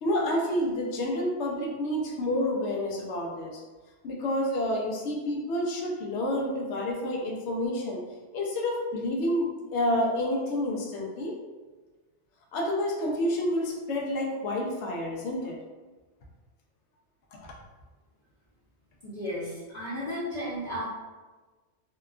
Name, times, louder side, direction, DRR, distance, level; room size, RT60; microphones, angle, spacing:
voice 1, 0.0-3.6 4.0-8.0 8.3-11.4 12.5-15.6, left 1 dB, 90° left, -2 dB, 0.9 m, -29 dB
voice 2, 19.0-20.8, equal, 45° left, -11 dB, 0.7 m, -34 dB
2.7 x 2.2 x 2.3 m, 1.3 s
omnidirectional pair, 1.1 m